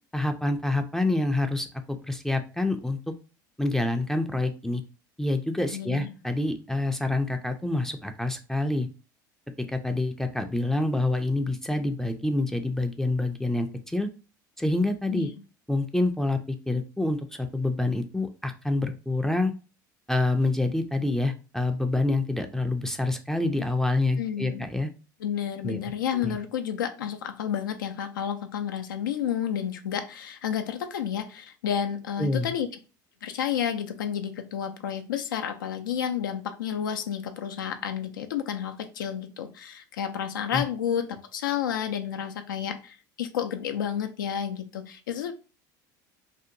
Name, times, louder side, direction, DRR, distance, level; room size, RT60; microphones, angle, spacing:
voice 1, 0.1-3.1 3.6-4.8 5.2-8.9 9.7-14.1 14.6-15.3 15.7-19.5 20.1-24.9 25.6-25.8 26.2-26.4 32.2-32.5 40.5-40.6, left 2 dB, 5° left, 6 dB, 0.3 m, -27 dB
voice 2, 5.7-6.1 15.1-15.4 24.2-24.6 25.2-32.7 33.2-45.3, left 9 dB, 90° left, 7 dB, 0.4 m, -31 dB
2.7 x 2.1 x 2.6 m, 0.34 s
hypercardioid pair, 80°, 10 cm